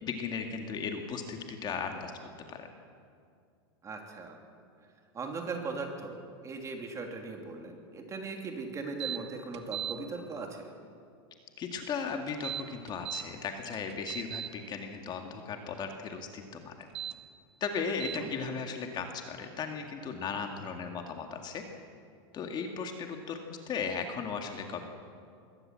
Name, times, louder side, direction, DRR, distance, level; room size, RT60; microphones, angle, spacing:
voice 1, 0.0-2.1 2.5-2.7 11.6-16.7 17.6-21.6 22.3-24.9, left 5 dB, 30° left, 4 dB, 2.1 m, -36 dB
voice 2, 3.8-4.4 5.1-10.7 18.1-18.3, right 3 dB, 20° right, 3 dB, 3.1 m, -39 dB
sound 1, 9.0-9.2 9.5-10.0 12.3-13.2 13.7-14.5 16.8-17.1 18.0-18.2, right 10 dB, 90° right, 1.4 m, -37 dB
22.0 x 17.5 x 7.7 m, 2.3 s
supercardioid pair, 130°, 14 cm